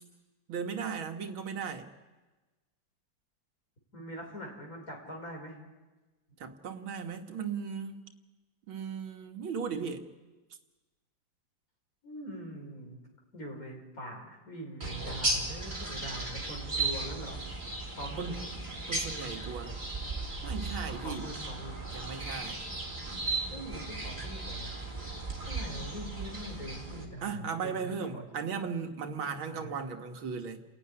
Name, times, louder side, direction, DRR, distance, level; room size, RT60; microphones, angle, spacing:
voice 1, 0.5-1.9 6.4-8.0 8.7-10.0 18.2-18.4 18.9-19.7 20.4-21.3 21.9-22.7 27.2-30.6, right 6 dB, 90° right, 5 dB, 2.4 m, -37 dB
voice 2, 3.9-5.6 12.0-13.0 13.3-17.4 18.0-18.4 20.9-21.8 23.5-24.8 25.4-28.3 29.3-29.7, equal, 45° left, 1 dB, 5.6 m, -43 dB
sound 1, 14.8-27.0, right 3 dB, 25° right, 3.7 m, -36 dB
29.5 x 15.5 x 9.8 m, 1.2 s
omnidirectional pair, 2.1 m